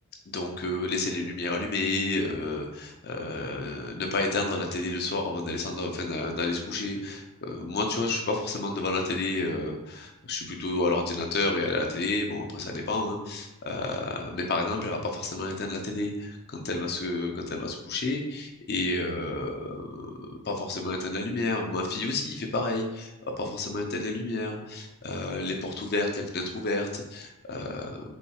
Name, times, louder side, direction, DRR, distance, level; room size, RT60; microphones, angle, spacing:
voice 1, 0.3-28.0, left 2 dB, 50° left, 2 dB, 0.6 m, -30 dB
4.2 x 4.2 x 2.3 m, 0.99 s
head